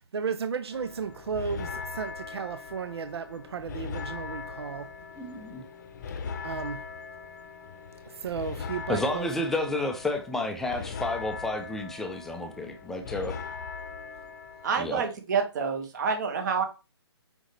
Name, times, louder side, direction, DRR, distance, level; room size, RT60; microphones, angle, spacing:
voice 1, 0.1-4.9 6.4-6.8 8.2-9.7, right 6 dB, 70° right, 0.6 m, -34 dB
sound 1, 0.7-14.7, left 5 dB, 40° left, 0.8 m, -40 dB
voice 2, 5.2-5.7 8.9-13.4 14.8-15.1, left 2 dB, 5° left, 0.5 m, -31 dB
voice 3, 14.6-16.6, right 5 dB, 40° right, 1.6 m, -28 dB
6.2 x 5.2 x 3.2 m
hypercardioid pair, 150°, 14 cm